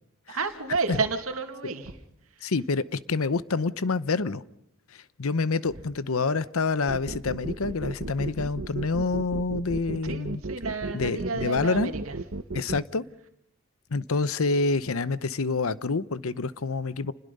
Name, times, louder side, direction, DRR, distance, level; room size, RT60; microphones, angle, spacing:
voice 1, 0.3-1.9 2.4-2.5 10.0-12.2, right 4 dB, 85° right, 6 dB, 2.3 m, -31 dB
voice 2, 2.4-4.4 4.9-10.4 10.9-11.9 12.5-13.1 13.9-17.1, left 4 dB, 85° left, 16 dB, 0.8 m, -27 dB
sound 1, 6.9-12.8, right 2 dB, 60° right, 1.0 m, -34 dB
29.0 x 21.0 x 5.4 m, 0.73 s
head